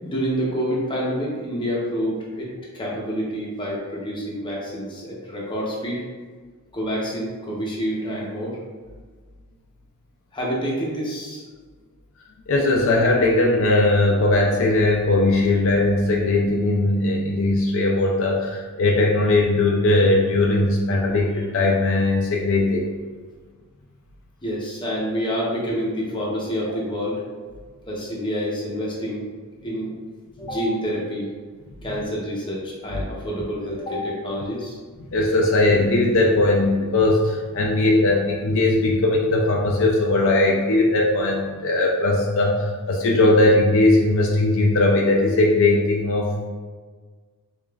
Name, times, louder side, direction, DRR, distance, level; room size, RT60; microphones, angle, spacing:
voice 1, 0.0-6.1 6.7-8.6 10.3-11.4 24.4-27.2 27.9-29.3 29.6-30.0 30.4-31.3 31.8-34.8, equal, 20° left, -4 dB, 0.7 m, -27 dB
voice 2, 12.5-22.8 35.1-46.5, left 2 dB, 60° left, -1 dB, 0.4 m, -19 dB
5.0 x 2.4 x 2.3 m, 1.5 s
head